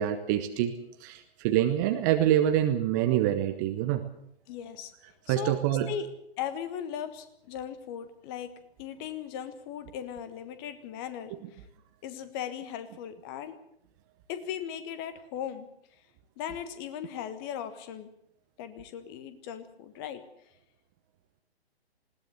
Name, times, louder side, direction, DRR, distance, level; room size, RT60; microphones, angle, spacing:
voice 1, 0.0-4.0 5.3-5.9 11.3-11.4, right 11 dB, 20° right, 8 dB, 0.9 m, -26 dB
voice 2, 4.5-4.9 5.3-5.6 5.9-6.1 6.4-8.5 8.8-11.6 12.0-13.6 14.3-15.7 16.4-18.1 18.6-20.2, left 9 dB, 20° left, 11 dB, 1.4 m, -38 dB
20.0 x 18.0 x 8.1 m, 0.72 s
figure-of-eight pair, 130°, 32 cm